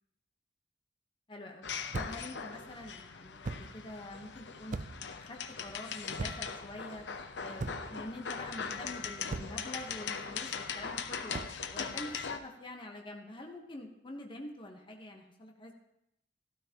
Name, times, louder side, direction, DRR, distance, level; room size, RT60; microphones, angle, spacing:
voice 1, 1.3-1.7 2.0-4.8 5.1-7.1 7.4-11.3 11.7-15.7, left 1 dB, 30° left, 2 dB, 1.0 m, -46 dB
sound 1, 1.6-12.4, left 6 dB, 80° left, 0.7 m, -40 dB
sound 2, 1.9-2.3 3.4-3.8 4.7-5.1 6.2-6.6 7.6-8.0 9.3-9.7 11.3-11.6, right 3 dB, 45° right, 0.5 m, -39 dB
15.0 x 12.5 x 2.9 m, 0.82 s
head